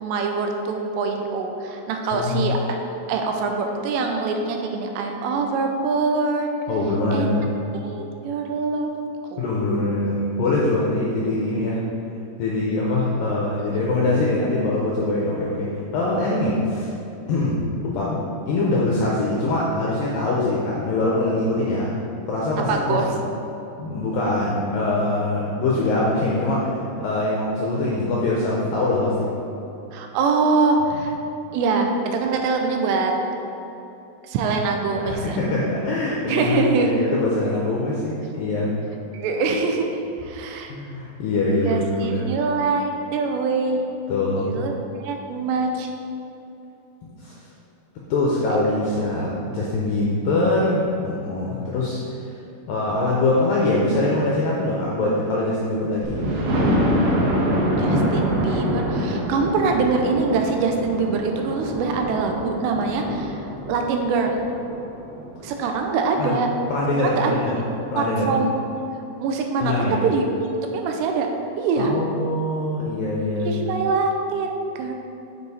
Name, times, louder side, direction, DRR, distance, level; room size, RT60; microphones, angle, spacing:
voice 1, 0.0-2.6 2.8-6.5 7.1-7.3 7.8-8.9 9.3-9.6 22.7-23.1 29.9-31.1 31.5-33.1 34.3-35.4 36.3-37.0 39.1-39.9 40.2-40.7 41.6-43.8 44.4-44.7 45.0-45.9 57.7-63.4 63.7-64.4 65.4-66.5 67.0-67.4 68.0-68.5 69.2-71.3 71.6-71.9 73.5-74.9, right 4 dB, 85° right, 3 dB, 2.8 m, -24 dB
voice 2, 2.1-2.5 6.7-7.5 9.4-11.8 12.4-15.7 15.9-16.9 17.3-17.6 17.8-22.0 22.3-23.0 23.8-29.3 35.0-38.7 40.7-42.2 44.1-44.6 47.0-47.5 48.1-52.0 52.7-56.2 66.2-66.4 66.7-67.6 67.9-68.3 69.6-70.0 71.8-73.6, left 2 dB, 80° left, -4 dB, 2.0 m, -23 dB
Thunder, 56.0-65.8 66.3-66.4 66.8-66.9 67.2-67.3, equal, 70° right, 2.6 m, -25 dB
8.8 x 4.8 x 4.2 m, 2.9 s
omnidirectional pair, 5.0 m